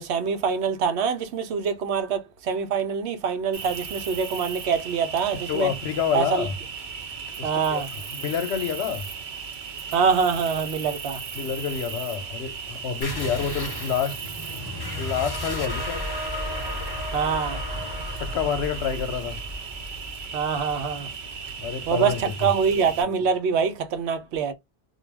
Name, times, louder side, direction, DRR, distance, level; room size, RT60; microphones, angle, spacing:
voice 1, 0.0-5.7 6.1-6.5 7.4-7.9 9.9-11.2 17.1-17.6 20.3-21.1 21.9-24.5, right 6 dB, 85° right, 0.9 m, -25 dB
Cricket, 3.5-23.0, right 6 dB, 55° right, 0.6 m, -37 dB
voice 2, 5.5-6.5 7.4-7.8 8.1-9.1 11.4-14.2 15.0-16.0 18.2-19.4 21.6-22.3, left 7 dB, 85° left, 0.9 m, -28 dB
sound 1, 13.0-22.2, left 1 dB, 25° left, 0.6 m, -34 dB
2.3 x 2.2 x 3.2 m
omnidirectional pair, 1.1 m